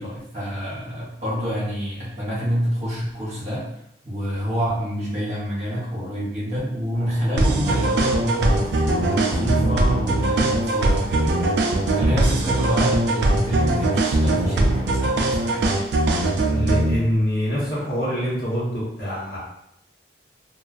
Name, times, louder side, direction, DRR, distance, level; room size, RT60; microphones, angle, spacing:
voice 1, 0.0-3.7 4.0-15.7, equal, 35° right, -8 dB, 1.0 m, -27 dB
sound 1, 6.9-15.3, equal, 30° left, 0.7 m, -40 dB
sound 2, 7.4-17.0, right 2 dB, 70° right, 0.3 m, -21 dB
voice 2, 16.4-19.4, equal, 55° left, -8 dB, 1.0 m, -25 dB
2.4 x 2.2 x 2.4 m, 0.78 s
head